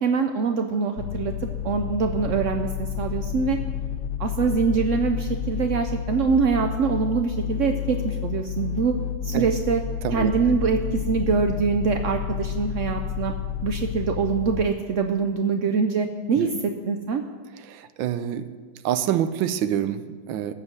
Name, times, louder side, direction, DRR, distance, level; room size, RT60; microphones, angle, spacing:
voice 1, 0.0-1.3 1.6-3.6 4.2-8.9 9.2-9.8 10.1-13.3 13.6-16.5 16.9-17.2, right 5 dB, 75° right, 5 dB, 0.7 m, -24 dB
sound 1, 1.0-14.7, left 9 dB, 75° left, 1.3 m, -30 dB
voice 2, 17.6-18.5 18.8-20.5, right 10 dB, 90° right, 12 dB, 1.4 m, -26 dB
14.5 x 5.4 x 8.0 m, 1.4 s
omnidirectional pair, 2.0 m